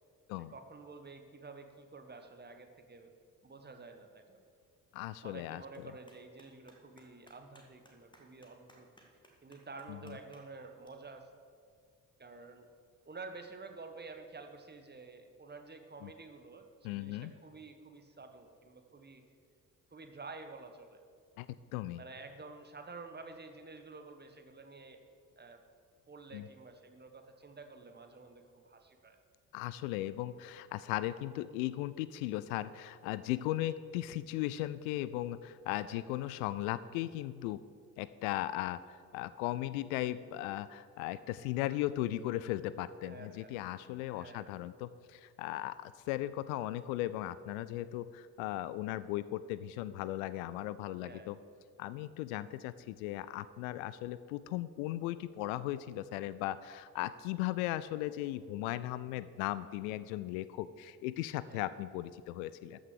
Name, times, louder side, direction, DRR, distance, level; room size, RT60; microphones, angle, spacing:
voice 1, 0.5-3.1 3.4-4.4 5.2-8.9 9.4-11.3 12.2-12.7 13.0-19.2 19.9-21.0 22.0-25.0 25.4-25.6 26.1-29.2 35.8-36.0 43.0-43.5 44.1-44.5 51.0-51.3 58.0-58.3 61.4-61.7, right 3 dB, 20° right, 6 dB, 1.4 m, -50 dB
Clapping, 4.3-10.9, equal, 10° left, 2.3 m, -65 dB
voice 2, 4.9-5.6 9.9-10.2 16.0-16.1 16.8-17.3 21.4-21.5 21.7-22.0 26.3-26.5 29.5-37.6 38.0-51.4 51.8-62.8, left 15 dB, 65° left, 16 dB, 0.5 m, -37 dB
13.5 x 6.2 x 6.8 m, 2.2 s
figure-of-eight pair, 45°, 45 cm